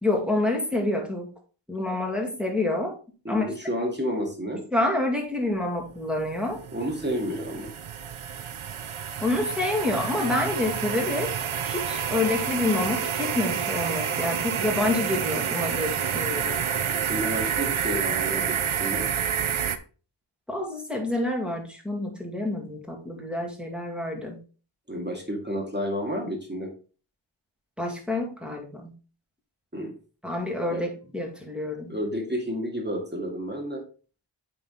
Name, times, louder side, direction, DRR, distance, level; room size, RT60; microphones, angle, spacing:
voice 1, 0.0-1.3 1.7-2.9 3.3-3.5 4.7-6.6 9.2-11.3 11.6-16.6 20.5-24.4 27.8-28.9 30.2-31.9, left 2 dB, ahead, 0 dB, 2.1 m, -28 dB
voice 2, 3.2-4.6 6.7-7.7 16.9-19.0 24.9-26.7 29.7-29.9 30.7-30.8 31.9-33.8, equal, 20° right, 1 dB, 2.1 m, -30 dB
sound 1, 5.9-19.8, right 8 dB, 80° right, 0.7 m, -29 dB
8.7 x 3.9 x 3.8 m, 0.37 s
wide cardioid pair, 55°, 48 cm